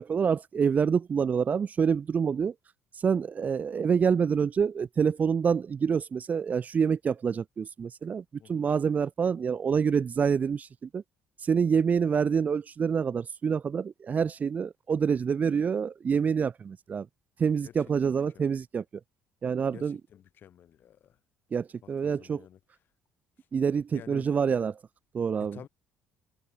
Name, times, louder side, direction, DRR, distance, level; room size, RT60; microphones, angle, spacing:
voice 1, 0.0-2.5 3.0-11.0 11.4-17.1 17.4-18.8 19.4-20.0 21.5-22.4 23.5-24.8 25.1-25.6, right 6 dB, 40° right, 1.7 m, -27 dB
voice 2, 18.0-18.5 19.7-21.2 21.8-22.6 23.9-24.3 25.4-25.7, left 10 dB, 55° left, 5.2 m, -50 dB
hypercardioid pair, 65°, 4 cm